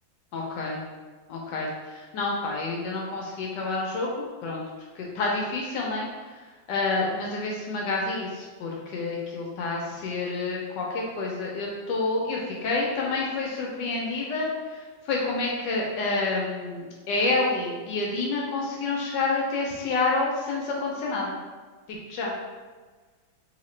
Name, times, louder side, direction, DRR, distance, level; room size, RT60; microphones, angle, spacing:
voice 1, 0.3-0.8 1.3-4.6 5.0-6.1 6.7-14.5 15.1-21.4 22.1-22.3, left 3 dB, 75° left, -2 dB, 1.1 m, -28 dB
3.1 x 2.9 x 3.1 m, 1.4 s
omnidirectional pair, 2.1 m